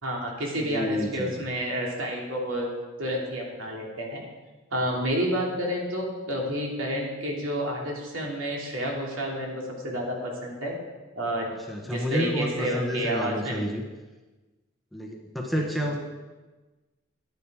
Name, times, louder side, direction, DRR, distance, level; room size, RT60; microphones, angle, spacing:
voice 1, 0.0-2.7 3.0-4.3 4.7-10.7 11.1-11.5 11.9-13.6 15.5-15.7, equal, 70° right, -2 dB, 2.8 m, -30 dB
voice 2, 0.6-1.3 11.7-13.8 14.9-15.9, equal, ahead, -1 dB, 1.1 m, -29 dB
11.0 x 10.5 x 4.8 m, 1.2 s
head